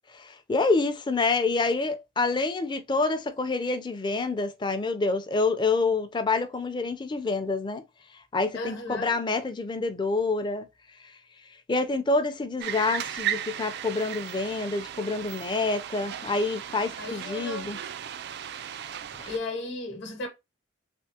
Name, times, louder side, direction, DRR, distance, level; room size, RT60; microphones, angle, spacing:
voice 1, 0.1-7.8 8.3-10.7 11.0-11.1 11.7-17.8 19.2-19.3, left 3 dB, 20° left, 0.4 m, -27 dB
voice 2, 8.5-9.1 17.0-17.7 19.2-20.3, left 2 dB, 55° left, 0.9 m, -35 dB
sound 1, 12.6-19.4, right 10 dB, 55° right, 0.3 m, -36 dB
3.4 x 3.1 x 2.7 m
head